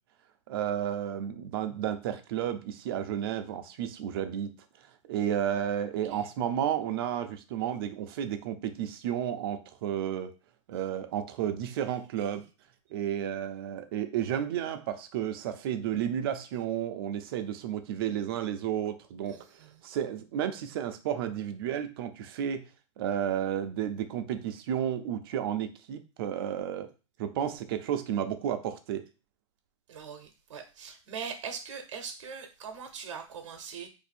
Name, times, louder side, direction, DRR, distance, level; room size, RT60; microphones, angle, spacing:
voice 1, 0.5-4.6 5.0-10.3 10.7-12.4 12.9-22.7 23.0-26.9 27.2-29.1, right 10 dB, 50° right, 8 dB, 0.5 m, -32 dB
voice 2, 19.3-19.8 29.9-33.9, right 6 dB, 80° right, 5 dB, 0.8 m, -41 dB
2.6 x 2.6 x 4.2 m, 0.32 s
supercardioid pair, 160°, 16 cm